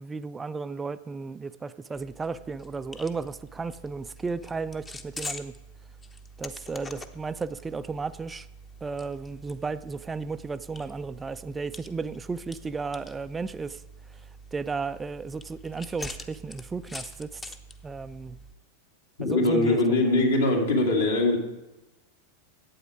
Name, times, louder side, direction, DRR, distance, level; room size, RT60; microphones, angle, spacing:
voice 1, 0.0-5.5 6.4-8.5 8.8-13.8 14.5-17.6 17.8-18.4 19.2-19.8, right 4 dB, 15° right, 12 dB, 0.3 m, -34 dB
sound 1, 1.9-18.5, left 1 dB, 15° left, 0.7 m, -45 dB
voice 2, 19.2-21.4, left 2 dB, 65° left, 0 dB, 2.4 m, -22 dB
11.5 x 8.5 x 5.0 m, 1.0 s
figure-of-eight pair, 90°, 0 cm